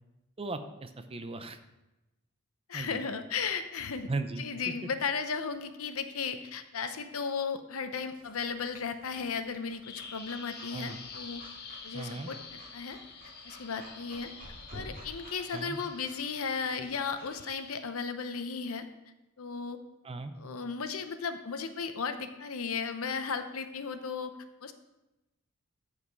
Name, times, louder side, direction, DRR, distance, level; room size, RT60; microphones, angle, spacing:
voice 1, 0.4-1.6 2.7-3.0 4.1-4.7 10.7-11.0 11.9-12.3 15.5-15.8 20.0-20.3, right 3 dB, 25° right, 9 dB, 0.6 m, -37 dB
voice 2, 2.7-4.1 4.4-11.4 11.8-13.0 13.4-14.3 14.7-18.9 19.4-19.8 20.4-24.3 24.6-24.7, left 5 dB, 75° left, 9 dB, 0.8 m, -35 dB
Breathing / Dog, 8.1-17.3, right 1 dB, 40° right, 2.6 m, -52 dB
Bird vocalization bird call bird song, 9.8-17.8, left 5 dB, 50° left, 1.1 m, -48 dB
14.0 x 5.0 x 4.7 m, 0.98 s
head